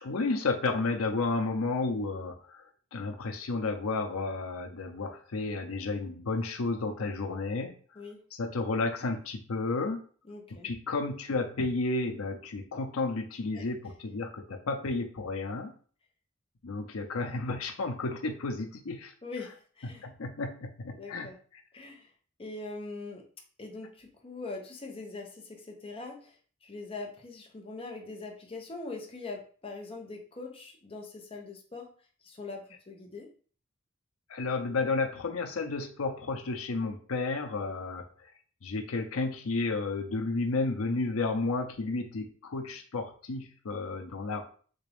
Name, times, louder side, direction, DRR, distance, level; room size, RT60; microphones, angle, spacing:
voice 1, 0.0-2.7 2.9-7.7 8.4-10.0 10.6-15.7 16.6-19.1 19.8-21.3 34.3-38.0 38.6-44.4, left 3 dB, 85° left, 5 dB, 0.6 m, -32 dB
voice 2, 10.2-10.7 13.5-13.7 19.2-20.1 20.9-21.4 21.7-22.1 22.4-23.2 23.6-26.4 26.6-31.9 32.2-33.3, left 3 dB, 25° left, 1 dB, 0.7 m, -42 dB
3.6 x 2.5 x 3.4 m, 0.43 s
head